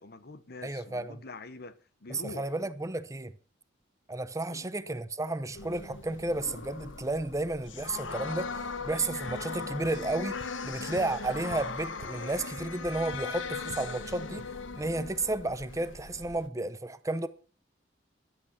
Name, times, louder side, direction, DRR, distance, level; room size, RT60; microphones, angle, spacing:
voice 1, 0.0-2.5 4.5-4.7, left 3 dB, 55° left, 1.2 m, -45 dB
voice 2, 0.6-1.2 2.1-3.3 4.1-8.5 8.8-14.5 14.7-17.3, right 2 dB, 15° right, 0.8 m, -32 dB
sound 1, 5.5-16.5, left 4 dB, 80° left, 1.1 m, -39 dB
running soft ground, 10.3-13.3 13.6-14.4, right 2 dB, 80° right, 1.1 m, -51 dB
14.5 x 11.0 x 5.9 m
head